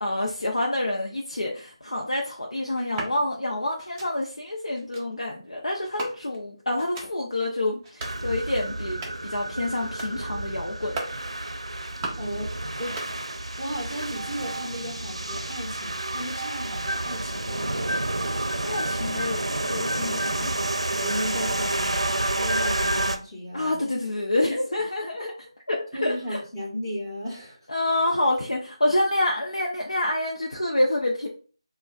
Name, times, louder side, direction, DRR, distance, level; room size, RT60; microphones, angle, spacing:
voice 1, 0.0-11.0 18.4-20.5 23.5-25.4 25.7-26.4 27.7-31.3, left 1 dB, 85° left, 0 dB, 0.7 m, -27 dB
sound 1, 2.7-3.2 3.8-4.1 4.7-5.0 5.8-6.4 6.8-7.1 7.7-8.2 8.7-9.3 9.8-10.1 10.7-11.2 11.7-12.3 12.7-13.5 13.7-14.3, right 2 dB, 15° right, 0.5 m, -38 dB
sound 2, 8.0-23.2, right 1 dB, 85° right, 0.5 m, -29 dB
voice 2, 12.2-12.5 12.8-13.0 13.6-18.0 21.0-23.9 25.9-27.6, equal, 10° left, -9 dB, 1.4 m, -35 dB
5.1 x 2.3 x 2.3 m, 0.39 s
figure-of-eight pair, 160°, 3 cm